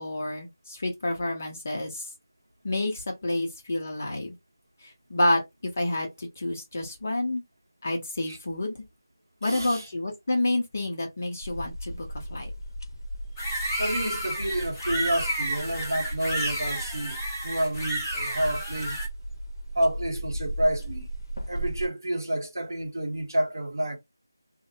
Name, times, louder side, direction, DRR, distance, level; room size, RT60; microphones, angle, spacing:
voice 1, 0.0-2.1 2.6-4.4 4.8-7.4 7.8-8.8 9.4-12.5, left 1 dB, 35° left, 0.7 m, -29 dB
voice 2, 9.4-9.9 13.8-19.0 19.7-21.1 21.5-24.0, right 1 dB, 65° right, 1.0 m, -29 dB
sound 1, 11.4-21.9, right 1 dB, 80° left, 0.6 m, -36 dB
sound 2, 13.4-19.1, right 1 dB, 5° left, 0.4 m, -31 dB
2.5 x 2.0 x 2.7 m
figure-of-eight pair, 175°, 2 cm